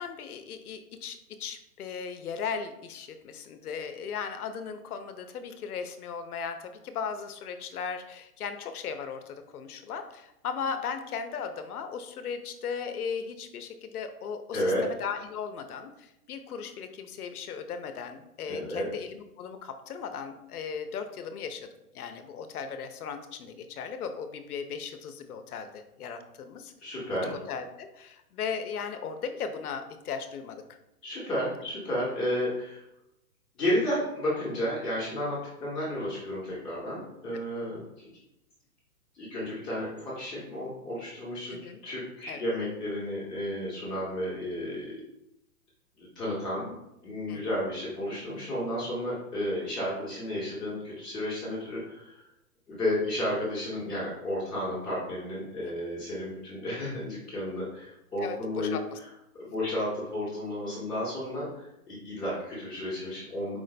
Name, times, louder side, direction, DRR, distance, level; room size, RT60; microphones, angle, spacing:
voice 1, 0.0-21.7 21.9-26.7 27.5-30.6 37.3-37.4 41.5-41.8 42.3-42.4 47.3-47.6 55.6-55.7 58.2-59.0, left 6 dB, 70° left, 8 dB, 0.7 m, -37 dB
voice 2, 14.5-14.8 18.5-18.9 26.8-27.4 31.0-32.8 33.6-37.8 39.1-41.5 41.8-44.9 46.0-46.7 47.0-52.3 52.7-58.7 59.4-63.6, left 1 dB, ahead, -18 dB, 0.3 m, -32 dB
4.8 x 2.1 x 4.0 m, 0.88 s
hypercardioid pair, 125°, 46 cm